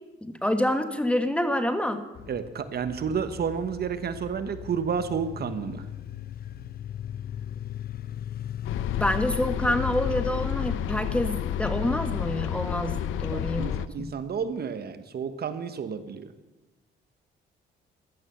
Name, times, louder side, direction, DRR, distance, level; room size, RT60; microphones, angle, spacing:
voice 1, 0.2-2.0 9.0-14.1, left 1 dB, 5° left, 8 dB, 1.6 m, -27 dB
sound 1, 2.1-10.7, left 10 dB, 50° left, 0.6 m, -38 dB
voice 2, 2.3-5.9 13.3-16.3, right 6 dB, 50° right, 11 dB, 1.2 m, -31 dB
sound 2, 8.6-13.9, left 10 dB, 90° left, 0.7 m, -30 dB
15.0 x 12.5 x 7.1 m, 1.2 s
cardioid pair, 90°, 20 cm